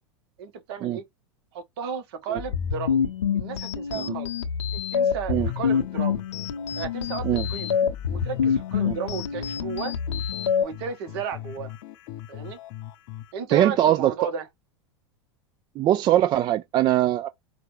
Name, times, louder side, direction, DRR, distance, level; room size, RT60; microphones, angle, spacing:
voice 1, 0.4-1.0 1.5-4.3 4.9-6.2 6.8-7.7 8.1-9.9 10.6-11.7 12.3-12.6 13.3-14.4, right 7 dB, 60° right, 1.1 m, -34 dB
sound 1, 2.4-10.6, left 7 dB, 85° left, 0.8 m, -26 dB
sound 2, 5.3-13.3, left 13 dB, 55° left, 0.6 m, -41 dB
voice 2, 13.5-14.1 15.8-17.3, right 12 dB, 30° right, 0.3 m, -21 dB
4.8 x 2.3 x 3.1 m
hypercardioid pair, 90°, 14 cm